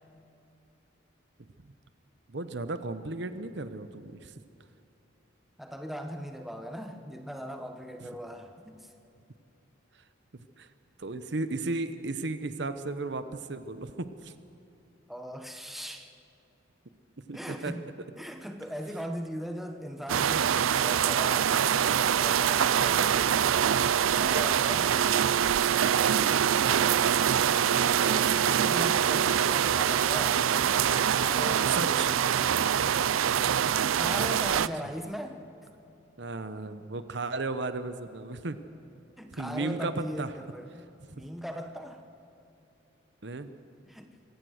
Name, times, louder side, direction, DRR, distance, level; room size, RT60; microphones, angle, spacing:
voice 1, 2.3-4.3 10.3-10.7 11.0-14.3 17.3-17.7 26.1-26.4 31.7-32.1 33.7-33.8 36.2-38.6 39.3-40.3 43.2-43.5, right 3 dB, 60° right, 11 dB, 0.9 m, -35 dB
voice 2, 5.6-8.9 15.1-16.1 17.3-17.8 18.2-23.9 24.2-24.9 27.8-30.5 30.8-32.4 34.0-35.4 39.2-40.8 41.1-42.0 43.8-44.1, equal, ahead, 5 dB, 1.0 m, -40 dB
sound 1, 20.1-34.7, right 9 dB, 90° right, 0.5 m, -24 dB
24.5 x 17.0 x 6.5 m, 2.9 s
head